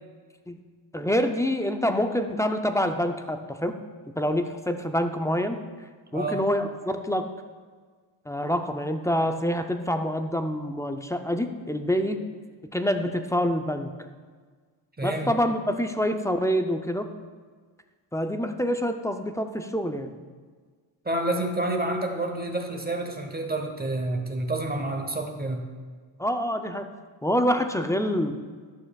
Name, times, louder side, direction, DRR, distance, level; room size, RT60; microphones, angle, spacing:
voice 1, 0.9-3.7 4.2-5.6 6.1-7.3 8.3-12.2 12.7-13.9 15.0-17.1 18.1-20.1 26.2-26.9 27.2-28.4, equal, 5° left, 6 dB, 0.4 m, -26 dB
voice 2, 6.1-6.4 15.0-15.3 21.0-25.6, right 2 dB, 20° right, 3 dB, 0.9 m, -29 dB
11.5 x 6.3 x 2.3 m, 1.5 s
cardioid pair, 75°, 47 cm